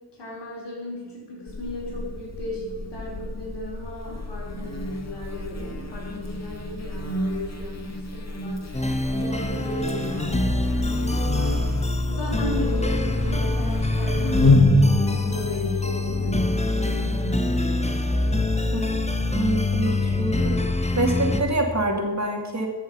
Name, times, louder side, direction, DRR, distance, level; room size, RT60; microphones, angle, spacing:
voice 1, 0.1-8.7 9.1-11.6 12.1-17.5, equal, 80° left, -4 dB, 4.7 m, -33 dB
Buzz, 1.5-14.6, left 3 dB, 40° left, 2.0 m, -29 dB
sound 1, 8.7-21.4, left 2 dB, 15° left, 1.2 m, -24 dB
voice 2, 19.4-20.6 20.9-22.7, right 2 dB, 40° right, 2 dB, 2.6 m, -26 dB
14.0 x 7.9 x 5.6 m, 1.4 s
cardioid pair, 40°, 41 cm